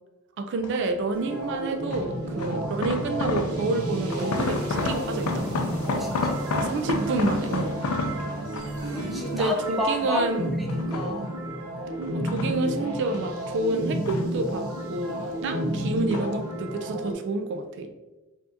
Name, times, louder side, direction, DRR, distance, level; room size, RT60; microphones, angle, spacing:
voice 1, 0.4-5.4 6.6-7.7 9.3-10.5 12.1-17.9, right 3 dB, 60° right, 6 dB, 0.3 m, -29 dB
sound 1, 0.6-1.0 1.9-3.8 4.1-8.9 9.4-10.3 10.7-11.5 12.0-13.4 13.6-14.8 15.1-15.7 16.1-16.5 16.8-16.9, left 3 dB, 85° left, 0.4 m, -32 dB
sound 2, 1.1-17.1, equal, 80° right, 0.8 m, -32 dB
sound 3, 2.2-9.4, right 1 dB, 50° left, 1.2 m, -35 dB
voice 2, 5.8-6.4 8.0-10.2 10.6-11.3, left 1 dB, ahead, -1 dB, 0.5 m, -32 dB
4.7 x 2.6 x 2.5 m, 1.1 s
head